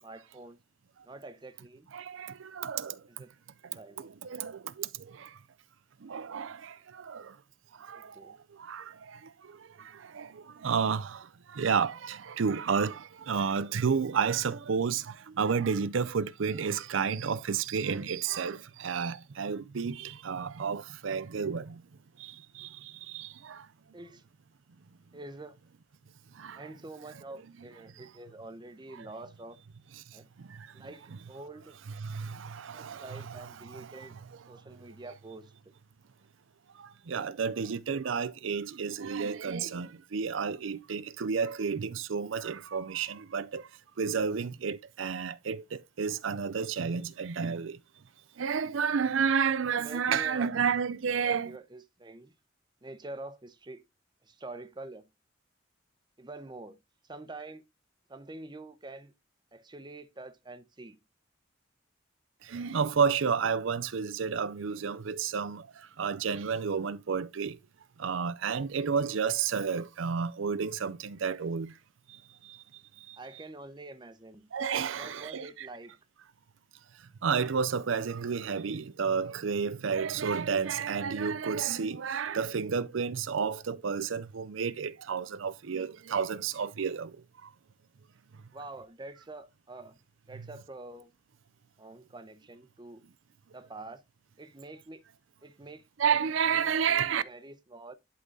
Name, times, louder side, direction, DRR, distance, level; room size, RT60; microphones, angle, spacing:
voice 1, 0.0-0.6 1.0-1.9 3.1-3.3 3.7-4.1 7.9-8.3 23.9-24.2 25.1-25.6 26.5-29.6 30.1-30.3 30.7-31.8 32.7-34.1 34.5-35.5 49.8-50.5 51.2-52.3 52.8-53.8 54.2-55.1 56.2-56.8 57.1-57.6 58.1-59.1 59.5-61.0 73.2-74.5 75.0-76.0 88.5-90.0 90.3-91.1 91.8-93.0 93.5-94.0 94.4-95.0 95.4-95.8 96.4-97.9, right 2 dB, 20° right, 0.7 m, -46 dB
voice 2, 1.9-3.0 4.0-4.9 5.1-5.3 6.0-7.3 7.8-8.2 8.6-9.2 9.5-21.8 22.2-23.6 26.4-26.7 29.0-29.1 29.9-30.0 30.5-30.7 32.0-34.2 36.8-43.6 44.0-47.8 48.4-51.6 62.5-65.7 66.0-67.6 68.0-71.7 72.4-72.6 73.1-73.2 74.5-75.7 77.2-87.1 96.0-97.2, right 6 dB, 75° right, 0.5 m, -31 dB
11.0 x 3.8 x 3.9 m
head